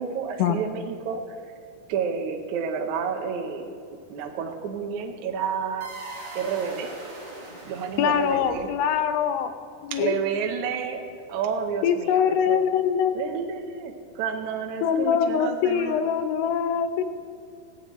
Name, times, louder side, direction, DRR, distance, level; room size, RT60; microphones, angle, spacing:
voice 1, 0.0-1.5 1.9-5.9 6.4-6.9 7.7-8.7 9.9-11.0 11.3-12.6 13.1-16.1, right 6 dB, 70° right, 3 dB, 1.9 m, -30 dB
sound 1, 5.8-9.0, right 2 dB, 25° right, 2.4 m, -41 dB
voice 2, 8.0-9.5 9.8-10.2 11.8-13.1 14.8-17.0, left 8 dB, 75° left, 9 dB, 2.5 m, -23 dB
19.5 x 15.5 x 3.1 m, 2.5 s
omnidirectional pair, 4.5 m